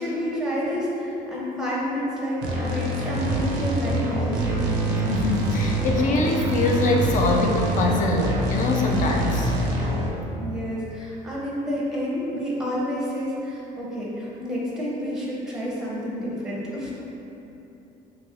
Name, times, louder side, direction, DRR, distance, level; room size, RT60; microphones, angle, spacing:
voice 1, 0.0-4.8 10.4-16.9, equal, 5° right, -6 dB, 0.6 m, -29 dB
sound 1, 2.4-10.1, right 1 dB, 85° right, 0.5 m, -25 dB
voice 2, 4.9-9.5, left 2 dB, 50° left, 0 dB, 0.4 m, -23 dB
3.0 x 2.9 x 2.4 m, 2.9 s
cardioid pair, 110°, 17 cm